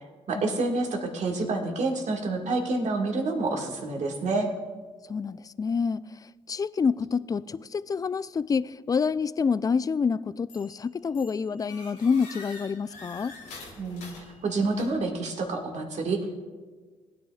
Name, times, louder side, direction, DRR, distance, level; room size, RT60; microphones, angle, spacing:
voice 1, 0.3-4.5 13.8-14.1 14.4-16.4, right 3 dB, 60° right, 2 dB, 1.7 m, -28 dB
voice 2, 5.1-13.3, left 5 dB, 25° left, 18 dB, 0.3 m, -28 dB
sound 1, 10.5-10.8 11.1-15.2, left 3 dB, 90° left, 2.0 m, -46 dB
17.0 x 9.5 x 2.3 m, 1.5 s
hypercardioid pair, 50°, 14 cm